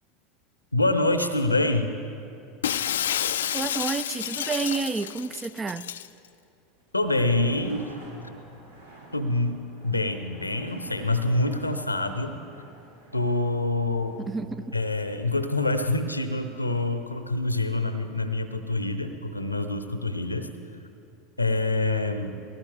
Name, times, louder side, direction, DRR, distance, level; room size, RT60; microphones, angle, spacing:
voice 1, 0.7-1.9 6.9-7.9 9.1-12.4 13.1-14.2 14.7-20.5 21.4-22.4, left 2 dB, 90° left, 0.8 m, -26 dB
Shatter, 2.6-6.1, left 10 dB, 70° left, 0.4 m, -29 dB
voice 2, 3.5-5.9 14.3-14.8, right 4 dB, 20° right, 0.4 m, -30 dB
sound 1, 6.7-18.6, right 1 dB, 80° right, 2.5 m, -52 dB
19.0 x 16.5 x 3.5 m
figure-of-eight pair, 80°, 0 cm